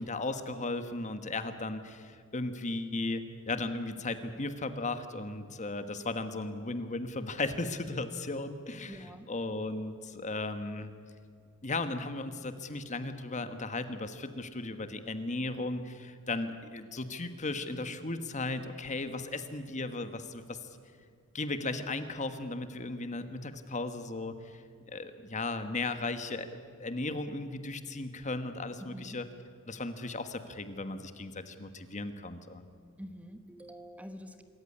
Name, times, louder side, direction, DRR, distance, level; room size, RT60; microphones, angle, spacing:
voice 1, 0.0-10.9 11.6-20.6 21.3-24.6 24.9-29.2 29.7-32.6, left 2 dB, 35° left, 9 dB, 1.4 m, -36 dB
voice 2, 8.9-9.3 28.8-29.2 33.0-34.4, equal, 5° right, 8 dB, 1.2 m, -46 dB
26.0 x 14.5 x 9.8 m, 2.2 s
head